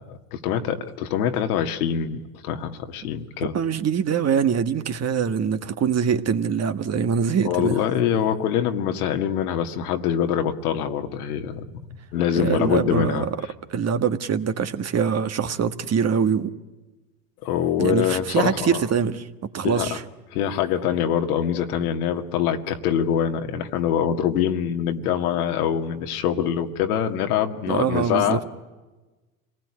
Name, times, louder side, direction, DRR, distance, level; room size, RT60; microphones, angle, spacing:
voice 1, 0.0-3.5 7.4-11.6 12.1-13.3 17.4-18.8 19.6-19.9 20.3-28.4, left 9 dB, 75° left, 6 dB, 2.0 m, -24 dB
voice 2, 3.4-7.8 12.4-13.3 13.7-16.5 17.8-20.0 27.7-28.4, right 7 dB, 35° right, 9 dB, 1.6 m, -24 dB
27.0 x 19.0 x 9.8 m, 1.2 s
hypercardioid pair, 85°, 44 cm